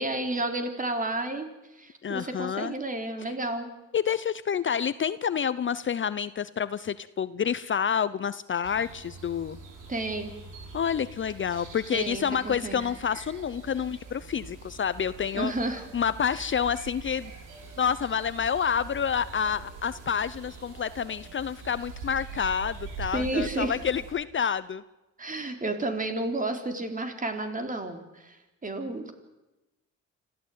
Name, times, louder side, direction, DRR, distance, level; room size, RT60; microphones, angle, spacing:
voice 1, 0.0-1.5 1.7-3.7 9.9-10.3 11.9-12.8 15.3-15.8 16.3-16.5 23.1-23.8 25.2-29.1, right 2 dB, 25° right, 6 dB, 4.0 m, -31 dB
voice 2, 2.0-2.7 3.9-9.6 10.7-15.5 15.9-17.3 17.8-24.8, left 7 dB, 40° left, 15 dB, 0.8 m, -28 dB
sound 1, 8.6-24.1, right 4 dB, 85° right, 7.2 m, -44 dB
26.0 x 15.0 x 9.5 m, 1.0 s
cardioid pair, 90°, 30 cm